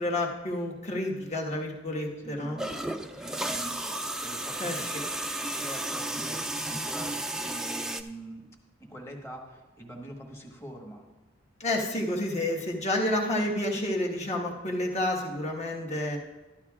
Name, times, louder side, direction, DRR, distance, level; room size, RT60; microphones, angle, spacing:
voice 1, 0.0-2.6 4.6-5.0 11.6-16.2, left 1 dB, 35° left, 0 dB, 1.4 m, -30 dB
voice 2, 2.2-5.0 5.3-8.5 8.8-11.0, right 1 dB, 15° left, 1 dB, 1.3 m, -44 dB
sound 1, 2.6-8.0, right 1 dB, 5° right, 0.3 m, -33 dB
13.5 x 11.5 x 2.4 m, 1.2 s
head